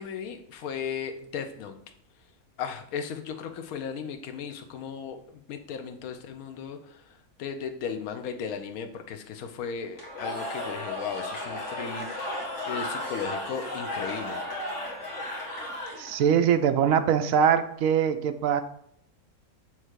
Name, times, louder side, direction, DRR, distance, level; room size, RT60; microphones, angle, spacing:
voice 1, 0.0-1.8 2.6-14.4, left 7 dB, 70° left, 7 dB, 1.1 m, -36 dB
Cheering / Crowd, 10.0-16.3, left 1 dB, 50° left, 1.9 m, -34 dB
voice 2, 16.0-18.6, right 8 dB, 70° right, 9 dB, 0.9 m, -22 dB
7.4 x 3.3 x 4.7 m, 0.67 s
omnidirectional pair, 1.7 m